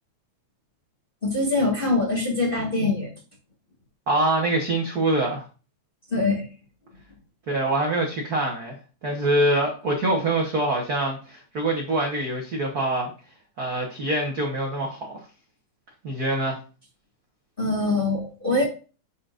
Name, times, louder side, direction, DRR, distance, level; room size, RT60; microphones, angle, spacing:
voice 1, 1.2-3.1 6.1-6.5 17.6-18.6, left 2 dB, 25° left, -3 dB, 1.4 m, -23 dB
voice 2, 4.1-5.4 7.5-8.8 9.0-13.1 13.6-15.2 16.0-16.6, right 1 dB, 50° right, 0 dB, 1.1 m, -24 dB
8.8 x 5.8 x 2.5 m, 0.35 s
omnidirectional pair, 3.4 m